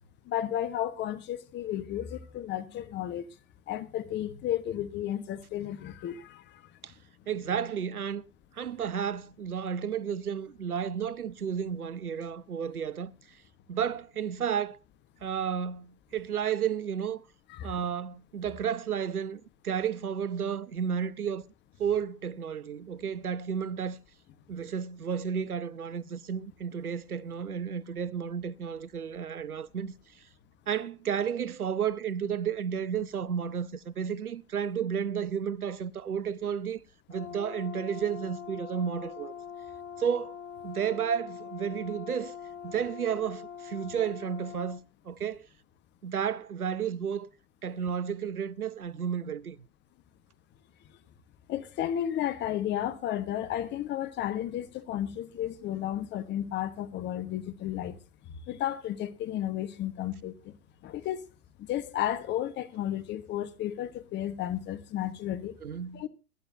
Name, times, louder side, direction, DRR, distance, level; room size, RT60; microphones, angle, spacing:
voice 1, 0.2-3.3 3.7-6.7 17.5-17.7 51.5-58.0 58.2-60.5 60.8-61.2 61.6-65.6 65.9-66.1, left 11 dB, 25° left, 1.2 m, -33 dB
voice 2, 7.3-8.3 8.5-13.1 13.7-14.8 15.2-17.2 17.6-21.4 21.8-24.0 24.5-29.9 30.7-36.8 37.1-39.3 40.0-40.4 40.6-42.3 42.6-44.8 45.1-45.5 46.0-47.3 47.6-49.6 65.6-66.1, right 8 dB, 85° right, 0.8 m, -32 dB
Brass instrument, 37.1-44.8, left 7 dB, 60° left, 1.5 m, -43 dB
22.0 x 11.5 x 2.7 m
figure-of-eight pair, 105°, 43 cm